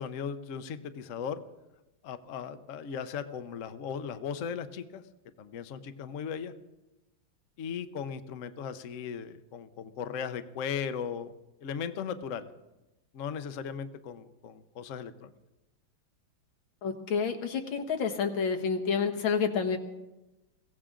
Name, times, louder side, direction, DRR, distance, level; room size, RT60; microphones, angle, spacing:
voice 1, 0.0-1.4 2.0-5.0 5.4-6.5 7.6-11.3 11.6-12.5 13.1-15.3, left 7 dB, 55° left, 9 dB, 0.9 m, -37 dB
voice 2, 16.8-19.8, left 6 dB, 85° left, 4 dB, 2.0 m, -29 dB
22.5 x 16.0 x 3.8 m, 1.0 s
omnidirectional pair, 2.1 m